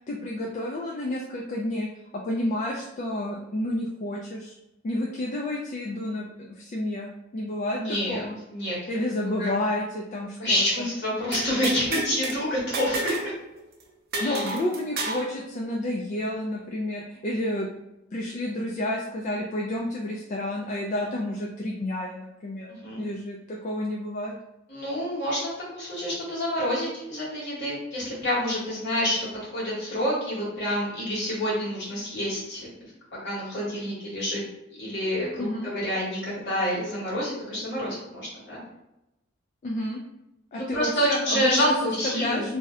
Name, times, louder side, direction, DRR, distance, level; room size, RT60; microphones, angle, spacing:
voice 1, 0.1-1.9 2.1-4.5 4.8-8.4 8.9-10.9 14.2-17.7 18.1-22.7 23.0-24.3 35.4-35.7 39.6-40.0 40.5-41.7 42.0-42.6, left 1 dB, 35° left, -1 dB, 0.3 m, -30 dB
voice 2, 7.7-8.7 9.4-9.5 10.4-13.3 14.2-14.4 22.8-23.0 24.7-29.2 29.5-32.7 33.2-34.4 34.8-38.6 40.5-42.5, equal, 55° left, -6 dB, 1.3 m, -28 dB
sound 1, 11.3-12.4 12.7-13.3 13.6-13.7 14.1-15.3, right 2 dB, 50° right, 0.5 m, -30 dB
2.6 x 2.1 x 3.5 m, 0.91 s
head